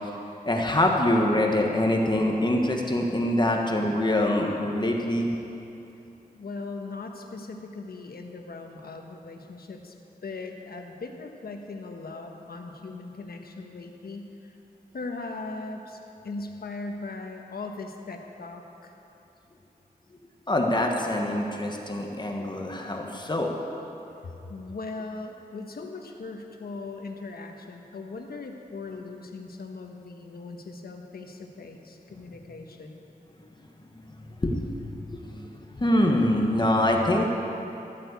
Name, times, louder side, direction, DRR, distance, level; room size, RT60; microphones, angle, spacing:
voice 1, 0.5-5.3 20.5-23.5 34.1-35.5 35.7-37.2, left 1 dB, 30° left, 0 dB, 1.4 m, -24 dB
voice 2, 6.3-10.0 10.2-14.6 14.9-16.0 16.2-18.9 24.2-33.0, left 3 dB, 75° left, 3 dB, 1.4 m, -39 dB
14.0 x 8.9 x 8.2 m, 2.9 s
wide cardioid pair, 105°, 16 cm